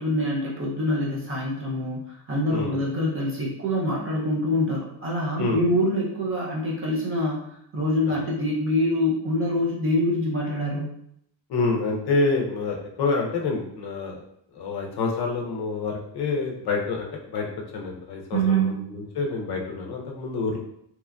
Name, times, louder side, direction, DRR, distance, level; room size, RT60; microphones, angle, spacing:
voice 1, 0.0-11.0 18.3-18.8, equal, 30° right, -4 dB, 0.5 m, -25 dB
voice 2, 11.5-14.2 14.5-20.6, left 3 dB, 60° left, 0 dB, 0.6 m, -27 dB
2.9 x 2.4 x 2.2 m, 0.73 s
wide cardioid pair, 175°, 45 cm